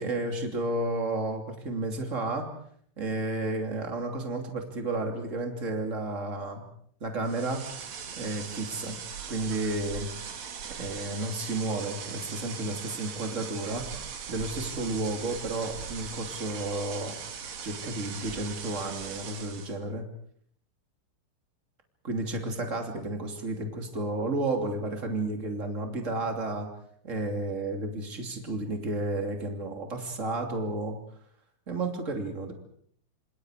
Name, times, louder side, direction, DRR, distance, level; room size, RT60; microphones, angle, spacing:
voice 1, 0.0-2.5 3.0-6.6 7.0-7.6 8.2-9.0 9.3-10.1 10.8-13.8 14.3-17.1 17.6-20.0 22.0-26.7 27.0-31.0 31.7-32.5, right 2 dB, 25° right, 4 dB, 1.9 m, -32 dB
sound 1, 7.2-19.8, right 7 dB, 50° right, 2.1 m, -40 dB
27.5 x 27.0 x 5.0 m, 0.62 s
omnidirectional pair, 5.9 m